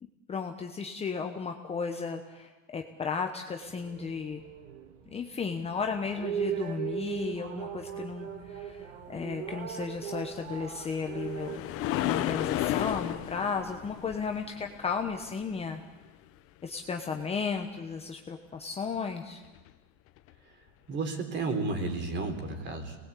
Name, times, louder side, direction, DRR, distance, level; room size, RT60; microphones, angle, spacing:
voice 1, 0.0-4.4 5.1-15.8 16.6-19.4, left 5 dB, 15° left, 4 dB, 1.1 m, -34 dB
sound 1, 3.6-12.5, right 9 dB, 75° right, 2.9 m, -38 dB
sound 2, 10.4-15.7 19.6-19.7 20.3-20.4, left 14 dB, 35° left, 1.0 m, -33 dB
voice 2, 20.9-23.0, right 3 dB, 30° right, 6 dB, 3.6 m, -32 dB
27.0 x 20.0 x 8.4 m, 1.3 s
supercardioid pair, 145°, 39 cm